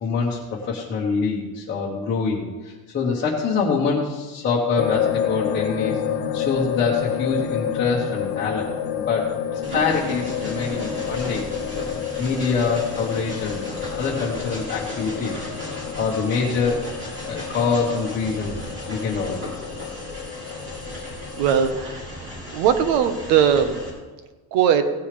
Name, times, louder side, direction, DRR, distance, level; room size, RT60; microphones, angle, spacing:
voice 1, 0.0-6.0 6.3-11.5 11.9-15.5 16.0-18.6 18.9-19.6, left 5 dB, 20° left, -5 dB, 1.3 m, -25 dB
sound 1, 4.8-21.7, left 9 dB, 60° left, 0.9 m, -30 dB
Train, 9.6-23.9, equal, 25° right, 2.9 m, -36 dB
voice 2, 21.4-22.0 22.5-23.7 24.5-24.9, right 8 dB, 85° right, 9 dB, 1.3 m, -19 dB
17.0 x 9.4 x 3.4 m, 1.3 s
cardioid pair, 175°, 49 cm